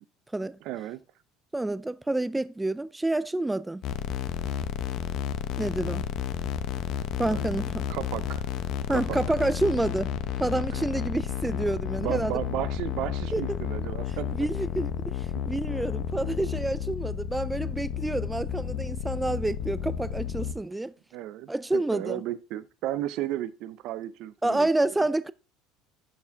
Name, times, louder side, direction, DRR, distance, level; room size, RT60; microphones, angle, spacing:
voice 1, 0.6-1.0 7.3-7.5 7.9-8.4 8.9-9.2 10.8-10.9 12.0-14.3 21.1-24.9, right 13 dB, 65° right, 0.6 m, -34 dB
voice 2, 1.5-3.8 5.6-6.1 7.2-7.9 8.9-12.4 13.3-13.6 14.1-20.9 21.5-22.2 24.4-25.3, right 2 dB, 10° right, 0.3 m, -28 dB
sound 1, 3.8-20.5, left 9 dB, 60° left, 0.8 m, -32 dB
11.5 x 4.6 x 3.5 m
supercardioid pair, 90°, 0 cm